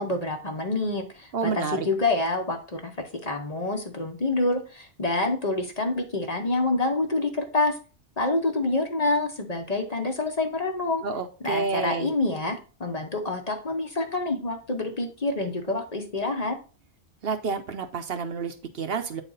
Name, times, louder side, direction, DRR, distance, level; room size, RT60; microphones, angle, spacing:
voice 1, 0.0-2.9 3.2-7.7 8.2-11.0 11.4-16.5, left 2 dB, 35° left, 3 dB, 0.9 m, -27 dB
voice 2, 1.3-1.9 11.0-12.1 17.2-19.2, right 5 dB, 60° right, 7 dB, 0.8 m, -29 dB
8.6 x 4.1 x 3.9 m, 0.36 s
omnidirectional pair, 1.2 m